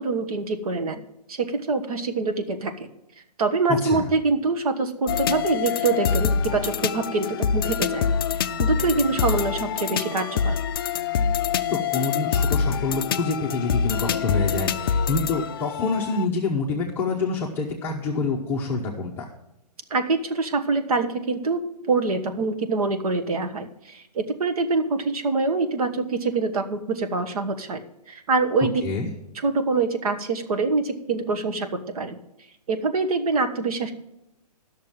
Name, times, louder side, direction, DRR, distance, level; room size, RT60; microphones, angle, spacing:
voice 1, 0.0-2.9 3.4-8.1 8.6-10.6 19.9-27.8 28.1-28.8 29.4-32.2 32.7-33.9, right 3 dB, 60° right, 7 dB, 1.3 m, -25 dB
voice 2, 3.7-4.1 11.7-19.3 28.8-29.1, left 3 dB, 10° left, -3 dB, 0.7 m, -27 dB
sound 1, 5.1-16.2, left 6 dB, 35° left, 0.4 m, -25 dB
10.5 x 6.6 x 7.3 m, 0.88 s
hypercardioid pair, 160°, 21 cm